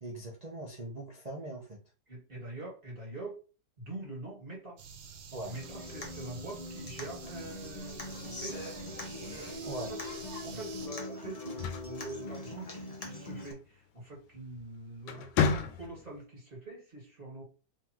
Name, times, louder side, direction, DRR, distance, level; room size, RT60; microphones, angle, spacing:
voice 1, 0.0-1.8 5.3-5.5 9.6-9.9 10.5-10.6, right 2 dB, 50° right, -2 dB, 0.4 m, -41 dB
voice 2, 2.1-3.4 3.8-4.8 5.5-8.7 9.8-10.0 10.4-17.4, right 2 dB, 25° right, -4 dB, 2.4 m, -44 dB
sound 1, 4.8-10.9, right 6 dB, 85° right, 1.5 m, -49 dB
Human voice / Acoustic guitar, 5.5-13.5, left 2 dB, 55° left, 0.4 m, -42 dB
sound 2, 11.4-12.9 14.3-14.6 15.0-16.2, left 6 dB, 90° left, 1.5 m, -32 dB
3.7 x 3.7 x 3.0 m, 0.34 s
omnidirectional pair, 2.1 m